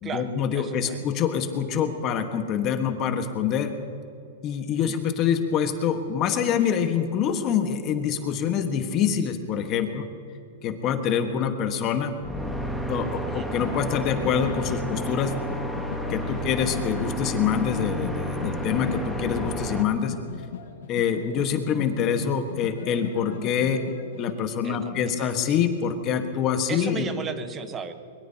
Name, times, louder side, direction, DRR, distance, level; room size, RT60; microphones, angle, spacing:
voice 1, 0.0-3.7 4.4-10.1 10.6-12.1 12.9-15.6 16.1-20.1 20.9-23.8 24.2-27.1, left 7 dB, 30° left, 6 dB, 1.4 m, -25 dB
voice 2, 0.5-1.1 4.8-5.1 13.3-13.5 16.3-16.5 24.6-25.4 26.7-27.9, right 6 dB, 20° right, 9 dB, 1.1 m, -36 dB
sound 1, 12.2-19.8, right 1 dB, ahead, 1.3 m, -31 dB
sound 2, 13.6-24.3, left 9 dB, 75° left, 1.8 m, -39 dB
22.5 x 22.0 x 2.9 m, 2.6 s
hypercardioid pair, 150°, 0 cm